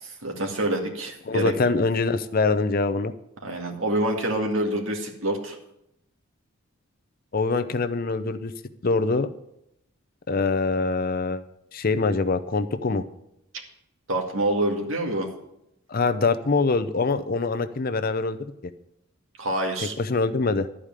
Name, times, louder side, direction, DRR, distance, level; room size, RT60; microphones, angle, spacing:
voice 1, 0.0-1.5 3.4-5.6 14.1-15.3 19.4-19.9, right 1 dB, 70° right, 2 dB, 2.1 m, -26 dB
voice 2, 1.3-3.1 7.3-8.5 8.8-9.3 10.3-11.4 11.7-13.0 15.9-18.4 20.0-20.7, left 3 dB, 45° left, 11 dB, 0.6 m, -24 dB
12.5 x 4.9 x 8.9 m, 0.81 s
head